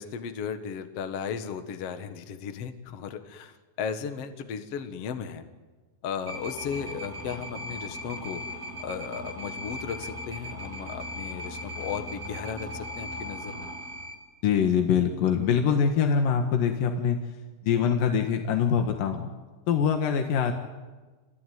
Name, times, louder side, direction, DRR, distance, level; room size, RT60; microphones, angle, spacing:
voice 1, 0.0-5.4 6.0-8.4 8.8-13.7, left 7 dB, 50° left, 7 dB, 2.2 m, -35 dB
sound 1, 6.3-14.1, equal, 10° right, 7.6 m, -38 dB
voice 2, 14.4-17.2 17.7-19.3 19.7-20.5, left 7 dB, 75° left, 4 dB, 3.2 m, -24 dB
27.5 x 20.5 x 9.4 m, 1.3 s
omnidirectional pair, 4.1 m